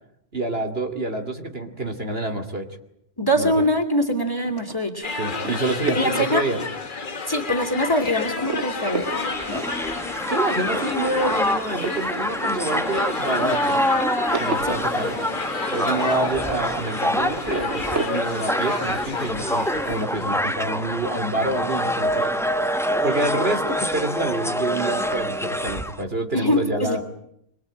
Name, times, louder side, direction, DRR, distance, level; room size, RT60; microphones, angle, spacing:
voice 1, 0.3-2.7 3.4-3.5 5.2-6.6 10.3-13.9 14.4-15.2 15.7-22.4 23.0-27.0, right 2 dB, 50° right, 6 dB, 2.9 m, -27 dB
voice 2, 3.2-5.1 5.9-6.5 7.3-9.1 9.5-9.7 14.6-14.8 26.3-27.0, equal, 15° left, 6 dB, 3.0 m, -23 dB
sound 1, 3.4-7.2 7.6-7.9 8.2-16.9 17.2-18.3, right 4 dB, 70° right, 1.7 m, -34 dB
sound 2, 5.0-20.2, left 4 dB, 45° left, 1.4 m, -31 dB
Crowd, 8.6-26.0, equal, ahead, 1.2 m, -26 dB
24.5 x 23.5 x 9.0 m, 0.75 s
omnidirectional pair, 1.3 m